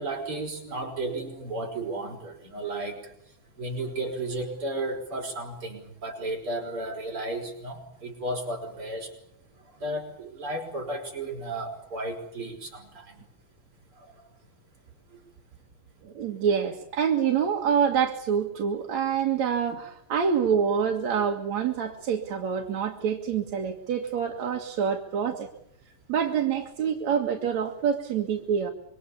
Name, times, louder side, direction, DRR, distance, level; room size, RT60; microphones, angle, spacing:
voice 1, 0.0-3.1 3.6-9.1 9.6-13.2 14.0-14.1 15.1-15.2, right 2 dB, 40° right, 1 dB, 6.0 m, -34 dB
voice 2, 16.0-25.5 26.1-28.7, right 7 dB, 60° right, 2 dB, 3.0 m, -26 dB
27.0 x 24.0 x 7.2 m, 0.71 s
omnidirectional pair, 3.6 m